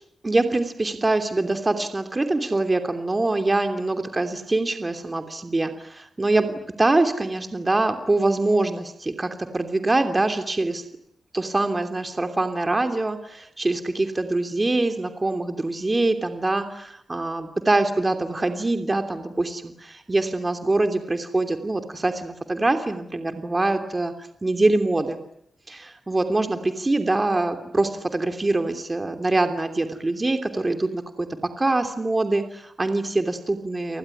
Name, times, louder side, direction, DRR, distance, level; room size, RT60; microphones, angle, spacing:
voice 1, 0.2-10.8 11.3-24.1 24.4-25.2 25.7-31.3 31.6-34.0, right 2 dB, 20° right, 7 dB, 2.9 m, -24 dB
29.5 x 19.5 x 10.0 m, 0.73 s
wide cardioid pair, 120°, 0 cm